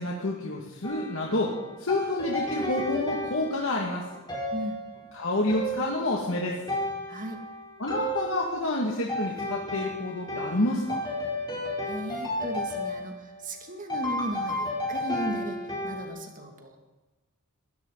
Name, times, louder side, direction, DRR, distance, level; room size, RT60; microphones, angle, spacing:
voice 1, 0.0-1.5 1.8-4.1 5.1-6.6 7.8-11.0, left 2 dB, 65° left, -2 dB, 2.2 m, -28 dB
sound 1, 0.8-16.1, left 1 dB, 20° left, 4.7 m, -33 dB
voice 2, 7.1-7.4 11.9-16.8, equal, 40° right, 3 dB, 2.4 m, -36 dB
21.5 x 16.0 x 4.1 m, 1.2 s
head